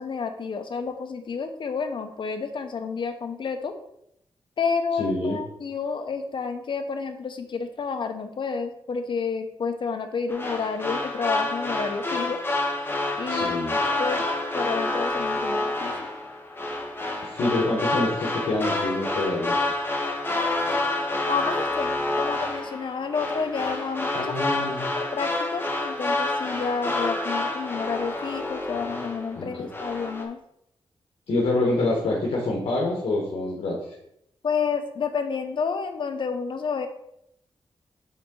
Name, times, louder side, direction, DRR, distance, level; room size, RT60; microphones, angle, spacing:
voice 1, 0.0-3.7 4.6-12.4 13.2-13.6 14.0-14.3 14.5-16.1 21.2-24.3 24.9-30.4 34.4-36.9, left 5 dB, 55° left, 7 dB, 0.8 m, -30 dB
voice 2, 5.0-5.4 13.3-13.8 17.2-19.6 24.1-24.8 29.3-29.5 31.3-33.9, left 2 dB, 80° left, -3 dB, 1.4 m, -26 dB
sound 1, 10.3-29.4 29.7-30.2, left 2 dB, 20° left, 1.1 m, -28 dB
8.3 x 3.9 x 3.8 m, 0.77 s
wide cardioid pair, 135°, 10 cm